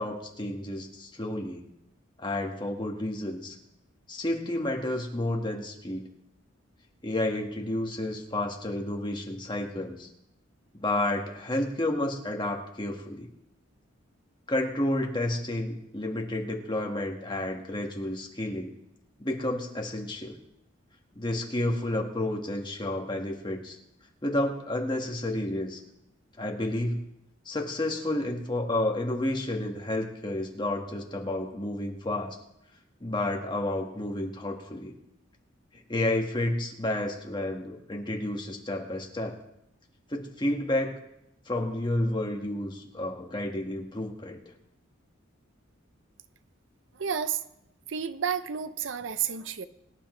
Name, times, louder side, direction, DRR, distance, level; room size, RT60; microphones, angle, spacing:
voice 1, 0.0-1.6 2.2-3.5 4.1-6.1 7.0-10.1 10.7-13.3 14.5-18.7 19.2-20.4 21.1-23.8 24.2-25.8 26.4-27.0 27.4-32.4 33.0-34.9 35.9-39.3 40.1-40.9 41.5-44.4, left 1 dB, 25° left, 1 dB, 1.7 m, -30 dB
voice 2, 47.0-47.4 47.9-49.7, right 7 dB, 65° right, 12 dB, 0.6 m, -31 dB
23.0 x 10.0 x 3.3 m, 0.85 s
head